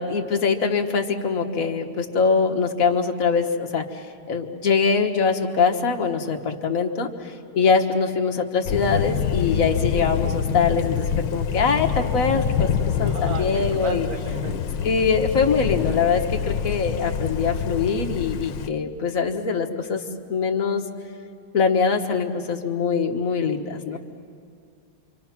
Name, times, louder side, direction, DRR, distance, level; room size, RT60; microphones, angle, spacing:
voice 1, 0.0-12.7 13.0-14.1 14.8-20.0 20.3-20.8 21.5-24.0, left 5 dB, 50° left, 3 dB, 1.7 m, -23 dB
Thunder, 8.6-18.7, left 7 dB, 90° left, 1.5 m, -26 dB
voice 2, 13.0-14.9 23.6-24.0, right 5 dB, 60° right, 4 dB, 1.5 m, -35 dB
27.5 x 25.0 x 5.9 m, 2.4 s
omnidirectional pair, 1.9 m